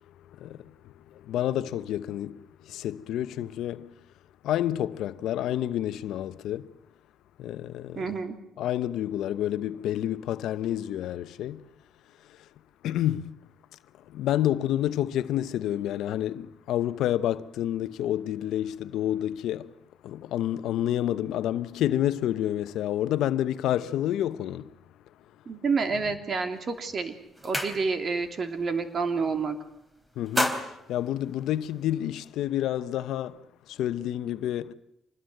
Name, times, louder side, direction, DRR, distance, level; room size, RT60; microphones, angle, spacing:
voice 1, 0.4-3.9 4.4-6.7 7.4-8.1 8.6-11.6 12.8-13.4 14.1-19.7 20.0-24.7 30.2-30.6 30.9-34.7, left 12 dB, 85° left, 0.9 m, -29 dB
voice 2, 7.9-8.4 25.5-27.1 27.4-29.6, right 4 dB, 45° right, 3.1 m, -29 dB
sound 1, 26.5-26.8 27.1-28.2 28.6-28.9 29.2-29.7 30.1-31.9, equal, 10° right, 3.7 m, -32 dB
26.0 x 20.5 x 7.9 m
cardioid pair, 90°, 0 cm